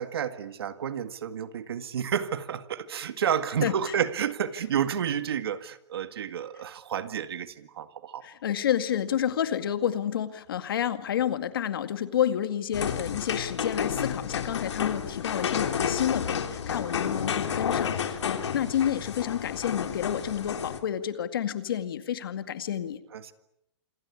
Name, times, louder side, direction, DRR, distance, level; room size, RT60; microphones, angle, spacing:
voice 1, 0.0-8.3 23.1-23.3, right 8 dB, 60° right, 10 dB, 2.0 m, -30 dB
voice 2, 8.2-23.0, left 10 dB, 50° left, 10 dB, 2.1 m, -29 dB
sound 1, 12.7-20.8, left 7 dB, 75° left, 3.2 m, -31 dB
27.5 x 23.5 x 8.5 m, 0.81 s
hypercardioid pair, 180°, 15 cm